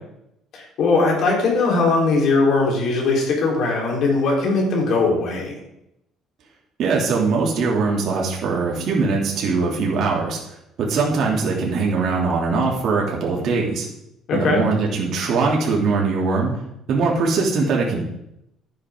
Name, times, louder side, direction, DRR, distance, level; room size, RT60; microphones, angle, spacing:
voice 1, 0.5-5.5 14.3-14.6, left 3 dB, 55° left, -1 dB, 4.2 m, -19 dB
voice 2, 6.8-10.4 10.8-13.8 14.3-16.5 16.9-18.0, right 4 dB, 55° right, -2 dB, 3.1 m, -21 dB
12.5 x 9.8 x 3.9 m, 0.82 s
cardioid pair, 140°, 0 cm